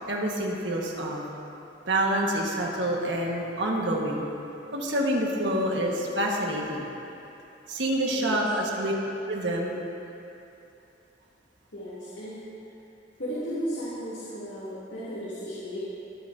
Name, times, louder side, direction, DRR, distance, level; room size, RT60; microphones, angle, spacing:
voice 1, 0.1-1.2 1.9-4.2 4.7-6.8 7.7-8.9 9.3-9.7, right 1 dB, 75° right, -1 dB, 1.5 m, -27 dB
voice 2, 8.1-8.4 11.7-12.4 13.2-15.8, equal, 75° left, -12 dB, 2.7 m, -35 dB
20.0 x 9.3 x 2.7 m, 2.9 s
head